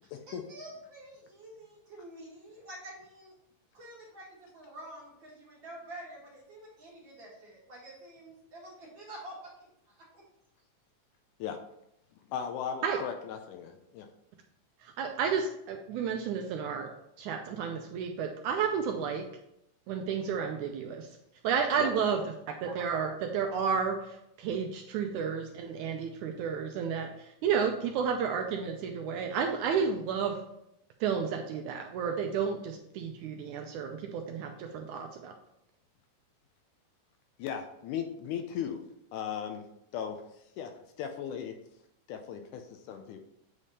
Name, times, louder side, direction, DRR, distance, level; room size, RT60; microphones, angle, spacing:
voice 1, 0.3-3.3 3.7-9.5 9.9-10.2, right 1 dB, 45° right, -4 dB, 1.8 m, -48 dB
voice 2, 12.3-14.1 21.8-21.9 37.4-38.8 39.1-39.6 39.9-40.2 40.6-40.7 41.0-41.5 42.1-43.2, left 8 dB, 80° left, 5 dB, 2.0 m, -37 dB
voice 3, 14.8-16.9 17.2-19.3 19.9-21.2 21.4-22.2 22.5-30.4 31.0-35.3, right 6 dB, 80° right, 3 dB, 1.9 m, -31 dB
8.3 x 3.5 x 4.1 m, 0.80 s
omnidirectional pair, 3.8 m